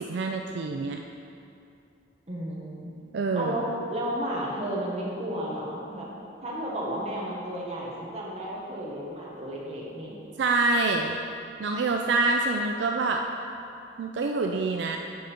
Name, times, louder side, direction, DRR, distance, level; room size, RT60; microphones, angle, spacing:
voice 1, 0.1-1.0 3.1-3.5 10.4-11.2 11.6-13.3 14.0-15.0, right 3 dB, 70° right, 3 dB, 0.3 m, -26 dB
voice 2, 2.3-2.9 3.3-6.1 6.4-10.2, right 1 dB, 35° right, -4 dB, 1.2 m, -33 dB
7.4 x 5.2 x 4.3 m, 2.6 s
head